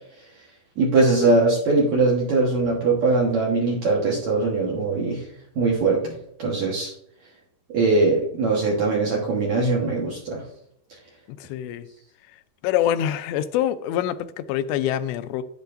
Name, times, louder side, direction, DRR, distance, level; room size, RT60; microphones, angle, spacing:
voice 1, 0.8-5.2 5.6-6.9 7.7-10.4, right 3 dB, 60° right, -3 dB, 1.9 m, -21 dB
voice 2, 11.4-11.9 12.6-15.4, left 11 dB, 85° left, 11 dB, 2.7 m, -25 dB
10.5 x 10.0 x 2.6 m, 0.72 s
omnidirectional pair, 5.0 m